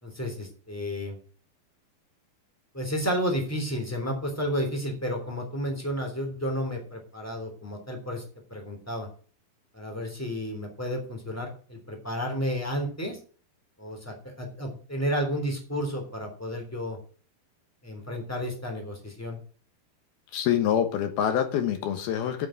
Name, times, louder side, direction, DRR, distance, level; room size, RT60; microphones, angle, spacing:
voice 1, 0.0-1.2 2.7-8.2 8.5-9.1 9.7-13.2 13.8-17.0 17.8-19.4, equal, 5° left, 2 dB, 2.4 m, -31 dB
voice 2, 20.3-22.5, left 9 dB, 70° left, 7 dB, 2.7 m, -26 dB
9.0 x 7.7 x 7.9 m, 0.42 s
omnidirectional pair, 5.3 m